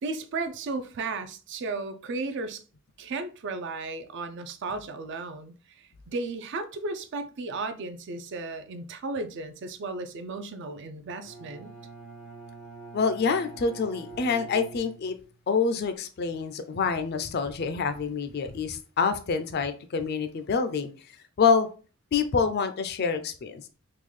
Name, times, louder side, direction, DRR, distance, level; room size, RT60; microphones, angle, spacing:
voice 1, 0.0-2.6 3.0-11.7, right 3 dB, 55° right, 0.4 m, -34 dB
Bowed string instrument, 11.2-15.4, right 3 dB, 85° left, 1.0 m, -45 dB
voice 2, 12.9-15.2 15.5-20.9 21.4-21.7 22.1-23.6, left 5 dB, 50° left, 0.4 m, -26 dB
3.7 x 2.3 x 3.1 m
head